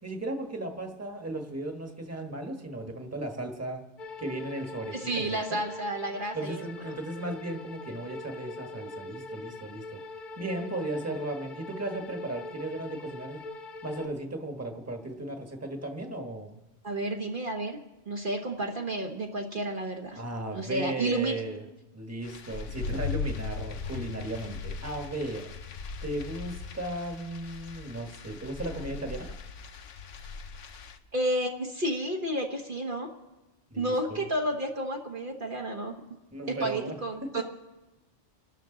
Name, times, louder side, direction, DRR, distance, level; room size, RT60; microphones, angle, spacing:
voice 1, 0.0-3.8 4.2-5.6 6.3-9.8 10.4-13.4 13.8-16.6 20.1-21.6 21.9-25.5 26.0-29.3 33.7-34.2 36.3-37.0 37.3-37.4, right 1 dB, 15° right, 3 dB, 1.4 m, -36 dB
sound 1, 4.0-14.1, left 2 dB, 45° left, 1.0 m, -42 dB
voice 2, 4.9-6.6 16.8-17.8 18.1-20.2 20.5-21.3 31.1-33.1 33.8-35.9 36.5-37.4, right 1 dB, 45° right, 1 dB, 1.3 m, -31 dB
sound 2, 22.2-31.0, left 5 dB, 85° left, 1.2 m, -38 dB
28.0 x 12.5 x 3.9 m, 1.1 s
omnidirectional pair, 1.2 m